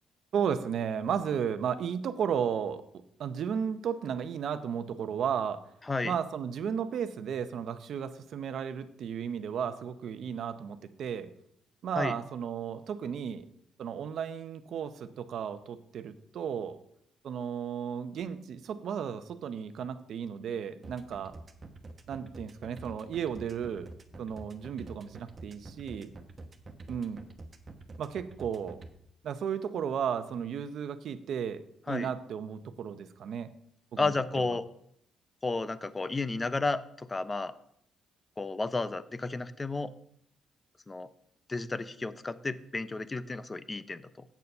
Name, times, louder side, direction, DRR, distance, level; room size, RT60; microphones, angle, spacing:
voice 1, 0.3-2.8 3.2-5.6 6.0-11.3 11.8-13.5 13.8-16.8 17.2-21.3 22.1-23.9 24.2-26.1 26.9-27.2 28.0-28.8 29.2-33.5 33.9-34.5, right 7 dB, 65° right, 10 dB, 0.7 m, -34 dB
sound 1, 20.8-28.9, right 2 dB, 35° right, 1.1 m, -46 dB
voice 2, 34.0-34.6 35.4-37.5 38.4-39.9 40.9-41.1 41.5-44.2, left 3 dB, 25° left, 15 dB, 0.6 m, -32 dB
8.3 x 6.9 x 5.4 m, 0.73 s
cardioid pair, 90°, 0 cm